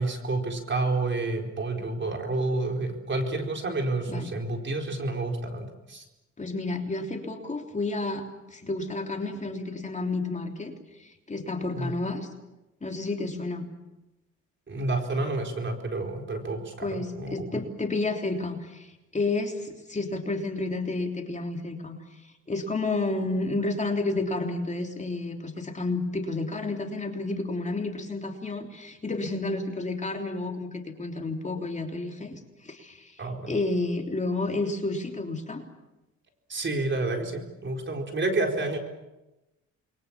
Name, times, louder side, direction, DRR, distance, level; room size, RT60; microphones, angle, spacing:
voice 1, 0.0-6.0 11.8-11.9 14.7-17.3 33.2-33.6 36.5-38.8, right 2 dB, 40° right, 3 dB, 4.5 m, -29 dB
voice 2, 6.4-12.3 12.8-13.7 16.8-35.6, left 2 dB, 25° left, 3 dB, 3.4 m, -31 dB
28.5 x 22.5 x 7.4 m, 1.0 s
cardioid pair, 90°, 30 cm